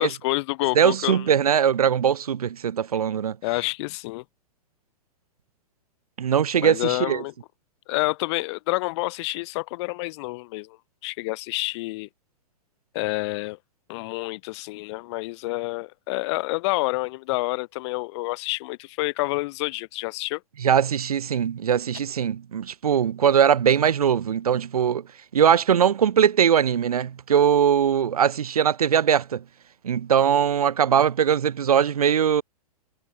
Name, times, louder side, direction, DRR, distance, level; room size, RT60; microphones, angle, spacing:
voice 1, 0.0-1.2 3.4-4.2 6.6-7.3 7.9-10.8 11.0-12.1 12.9-13.6 13.9-20.4, left 22 dB, 45° left, 4.3 m, -28 dB
voice 2, 0.7-3.4 6.2-7.2 20.6-25.0 25.3-29.4 29.8-32.4, right 8 dB, 70° right, 4.5 m, -21 dB
figure-of-eight pair, 110°, 20 cm